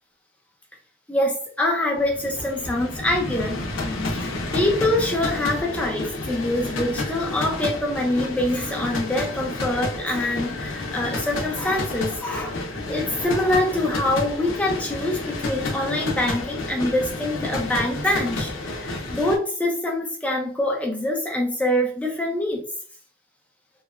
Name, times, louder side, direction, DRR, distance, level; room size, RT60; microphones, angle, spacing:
voice 1, 1.1-3.6 4.1-12.6 12.9-22.6, left 1 dB, 5° left, 0.5 m, -25 dB
sound 1, 1.9-19.4, left 2 dB, 85° left, 0.6 m, -30 dB
2.8 x 2.1 x 2.4 m
head